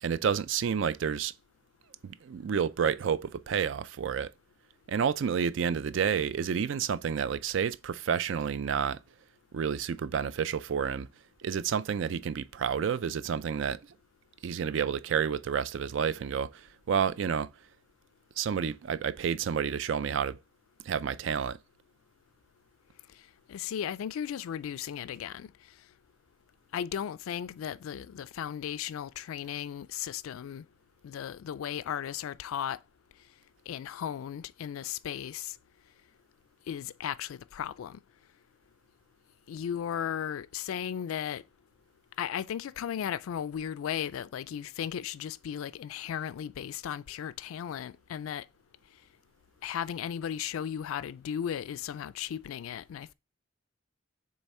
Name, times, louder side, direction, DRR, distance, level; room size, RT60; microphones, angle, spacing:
voice 1, 0.0-1.3 2.0-4.3 4.9-9.0 9.5-11.1 11.4-13.8 14.4-17.5 18.4-20.4 20.9-21.6, right 7 dB, 65° right, 0.3 m, -30 dB
voice 2, 23.5-25.5 26.7-30.6 31.0-32.8 33.7-35.6 36.7-38.0 39.5-41.4 42.2-48.5 49.6-53.1, left 9 dB, 90° left, 0.3 m, -36 dB
6.9 x 3.2 x 4.2 m
head